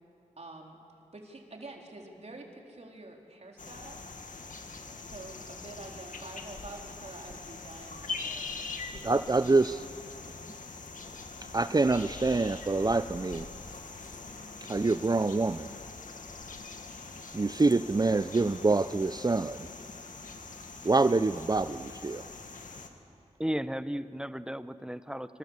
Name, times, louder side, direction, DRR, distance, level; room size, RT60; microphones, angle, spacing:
voice 1, 0.4-0.8 1.1-4.0 4.8-9.9, right 2 dB, 55° right, 0 dB, 4.1 m, -47 dB
sound 1, 3.6-22.9, left 4 dB, 85° left, 2.0 m, -43 dB
voice 2, 9.0-9.8 11.5-13.5 14.7-15.7 17.3-19.7 20.8-22.3, right 3 dB, 30° right, 12 dB, 0.6 m, -26 dB
voice 3, 23.4-25.4, equal, 5° right, 13 dB, 0.9 m, -34 dB
26.0 x 26.0 x 8.2 m, 2.6 s
cardioid pair, 50°, 13 cm